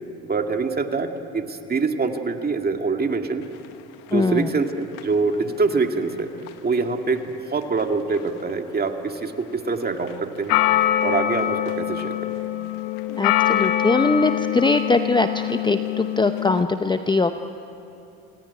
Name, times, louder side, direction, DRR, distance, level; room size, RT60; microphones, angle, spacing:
voice 1, 0.2-3.4 4.1-6.3 6.6-10.6 11.0-12.3, right 4 dB, 25° right, 5 dB, 2.1 m, -25 dB
voice 2, 4.1-4.5 13.1-17.3, left 3 dB, 10° left, 8 dB, 0.8 m, -21 dB
sound 1, 5.0-5.1 6.5-6.6 8.1-8.2 8.5-8.6 10.1-10.2 10.5-16.6, left 12 dB, 80° left, 1.2 m, -24 dB
27.5 x 18.0 x 9.5 m, 2.8 s
supercardioid pair, 90°, 37 cm